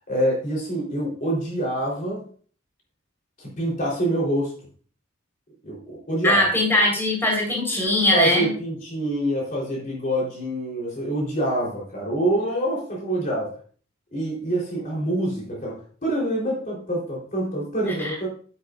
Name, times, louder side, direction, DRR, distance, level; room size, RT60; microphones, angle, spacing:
voice 1, 0.1-2.2 3.4-4.5 5.6-6.5 8.1-13.5 14.1-18.3, right 1 dB, 40° left, -4 dB, 3.9 m, -26 dB
voice 2, 6.2-8.5 18.0-18.1, left 1 dB, 10° left, -2 dB, 4.2 m, -21 dB
11.5 x 9.8 x 2.6 m, 0.43 s
head